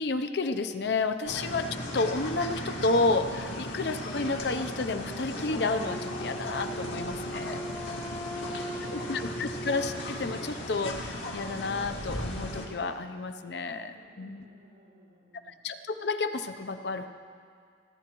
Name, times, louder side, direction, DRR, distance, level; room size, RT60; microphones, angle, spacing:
voice 1, 0.0-1.7 1.9-7.6 8.9-14.4 15.6-17.1, left 3 dB, 65° left, 9 dB, 0.6 m, -31 dB
sound 1, 1.2-12.7, left 1 dB, 90° left, 2.0 m, -37 dB
Wind instrument woodwind instrument, 5.8-10.8, equal, 10° left, 0.5 m, -40 dB
voice 2, 7.9-9.1 9.4-9.6 13.9-15.6, right 2 dB, 90° right, -13 dB, 4.7 m, -54 dB
30.0 x 10.5 x 3.1 m, 2.2 s
head